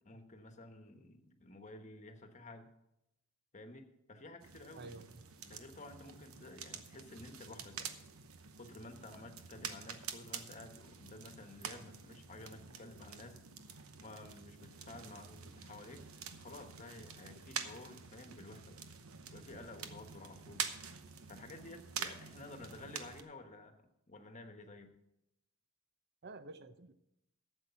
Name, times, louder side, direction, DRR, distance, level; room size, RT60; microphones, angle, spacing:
voice 1, 0.0-2.7 3.5-4.9 5.4-7.9 8.6-13.4 14.0-16.0 16.4-18.8 19.3-20.7 21.3-24.9, left 2 dB, 35° left, 6 dB, 1.2 m, -52 dB
sound 1, 4.4-23.2, right 7 dB, 75° right, 0.9 m, -47 dB
voice 2, 4.8-5.3 26.2-26.9, right 3 dB, 50° right, 12 dB, 0.7 m, -50 dB
12.0 x 7.9 x 5.6 m, 0.84 s
head